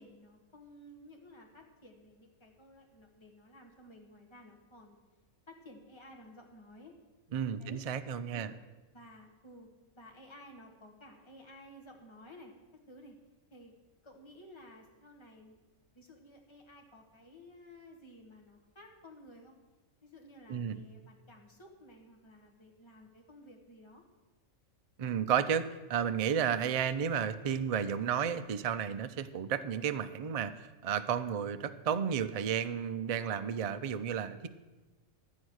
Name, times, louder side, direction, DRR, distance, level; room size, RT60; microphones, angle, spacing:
voice 1, 0.0-5.0 5.5-6.9 7.6-7.8 8.3-8.6 8.9-9.7 10.0-13.2 13.5-13.7 14.0-15.6 15.9-19.5 20.0-24.0, left 1 dB, 20° left, 1 dB, 1.6 m, -54 dB
voice 2, 7.3-8.5 20.5-20.8 25.0-34.5, right 8 dB, 65° right, 10 dB, 0.3 m, -32 dB
12.0 x 8.3 x 6.3 m, 1.2 s
omnidirectional pair, 1.4 m